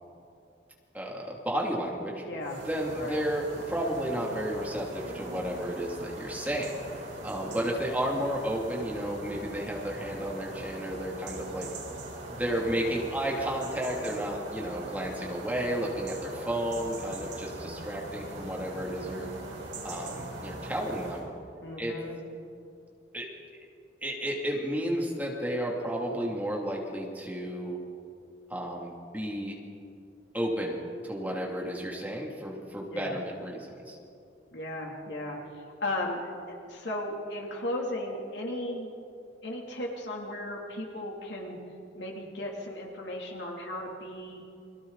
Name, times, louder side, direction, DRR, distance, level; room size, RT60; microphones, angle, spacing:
voice 1, 0.9-2.2 2.7-11.7 12.3-19.3 19.8-21.3 21.8-21.9 23.1-23.3 24.0-27.8 28.5-29.6 30.3-30.7 31.0-34.0, equal, 10° right, -2 dB, 2.7 m, -32 dB
voice 2, 2.2-2.6 2.9-3.3 21.6-22.2 32.9-33.2 34.5-38.9 39.4-41.6 41.9-44.4, left 1 dB, 70° left, -1 dB, 3.1 m, -36 dB
sound 1, 2.4-21.3, right 2 dB, 85° right, 4.7 m, -41 dB
29.0 x 23.0 x 4.1 m, 2.6 s
head